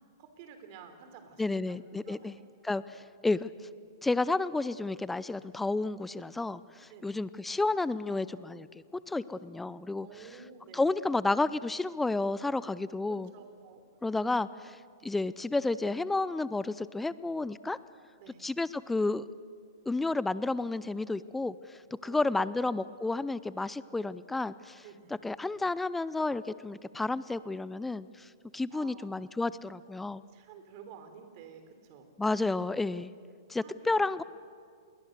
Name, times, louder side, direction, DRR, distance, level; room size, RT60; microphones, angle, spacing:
voice 1, 0.0-1.8 2.0-2.3 6.9-7.2 10.0-10.8 13.1-13.8 18.2-18.4 22.0-22.6 24.8-25.1 28.7-29.3 30.3-32.1 33.6-34.2, right 7 dB, 45° right, 7 dB, 3.8 m, -51 dB
voice 2, 1.4-2.3 2.6-3.5 4.0-10.1 10.7-13.3 14.0-14.8 15.0-17.8 18.4-19.3 19.9-24.8 25.2-30.2 32.2-33.1 33.5-34.2, left 3 dB, 5° left, 17 dB, 0.5 m, -31 dB
27.5 x 21.0 x 6.7 m, 2.2 s
hypercardioid pair, 125°, 2 cm